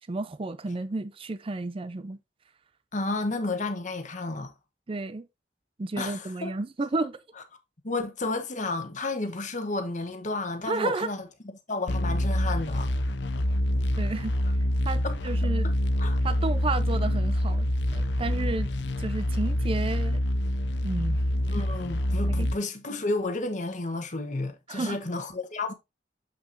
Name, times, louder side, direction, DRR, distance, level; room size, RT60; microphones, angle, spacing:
voice 1, 0.1-2.2 4.9-5.3 5.8-7.2 10.7-11.1 14.0-14.4 14.8-15.7 16.2-17.7 17.9-18.7 19.0-20.2 20.8-21.2 22.4-22.5 24.7-25.0, right 3 dB, 30° right, 0.5 m, -31 dB
voice 2, 2.9-4.5 6.0-6.5 7.8-11.3 11.7-12.9 15.0-15.2 15.6-16.2 21.5-25.7, left 2 dB, 40° left, 1.2 m, -32 dB
sound 1, 11.9-22.5, left 1 dB, 65° left, 0.7 m, -26 dB
7.6 x 5.8 x 2.6 m
head